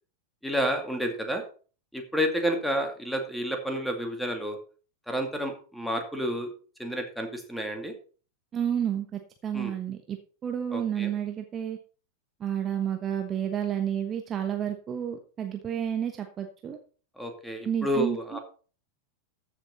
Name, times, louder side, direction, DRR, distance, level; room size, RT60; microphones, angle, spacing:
voice 1, 0.4-1.4 1.9-4.6 5.1-6.5 6.8-7.9 9.5-9.7 10.7-11.1 17.2-18.4, equal, ahead, 4 dB, 2.4 m, -30 dB
voice 2, 8.5-10.2 10.4-11.8 12.4-16.8 17.6-18.4, right 9 dB, 25° right, 5 dB, 1.2 m, -30 dB
14.0 x 6.6 x 4.3 m, 0.39 s
figure-of-eight pair, 90°, 0 cm